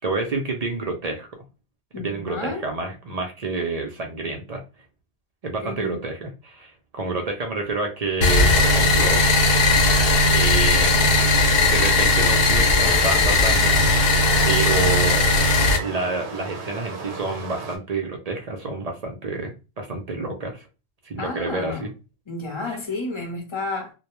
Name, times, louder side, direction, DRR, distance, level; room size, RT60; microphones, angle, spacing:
voice 1, 0.0-1.3 2.0-4.6 5.4-9.3 10.3-11.4 11.6-13.8 14.5-15.2 15.8-20.7 21.0-21.9 22.7-22.8, right 3 dB, 50° right, 0.5 m, -29 dB
voice 2, 1.9-2.7 5.6-6.0 21.2-21.9 22.3-23.9, left 3 dB, 30° left, 0.6 m, -31 dB
sound 1, 8.2-15.8, left 2 dB, 70° left, 0.8 m, -18 dB
Stream, 12.7-17.8, right 3 dB, 80° right, 0.9 m, -34 dB
2.2 x 2.2 x 2.9 m
omnidirectional pair, 1.1 m